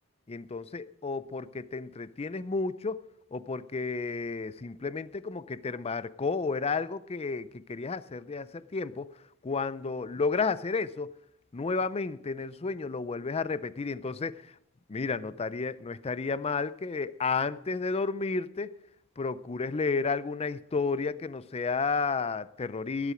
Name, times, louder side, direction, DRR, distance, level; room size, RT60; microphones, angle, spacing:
voice 1, 0.3-3.0 3.3-9.1 9.4-11.1 11.5-14.5 14.9-18.7 19.2-23.1, left 4 dB, 30° left, 0.5 m, -32 dB
19.5 x 8.3 x 5.0 m
head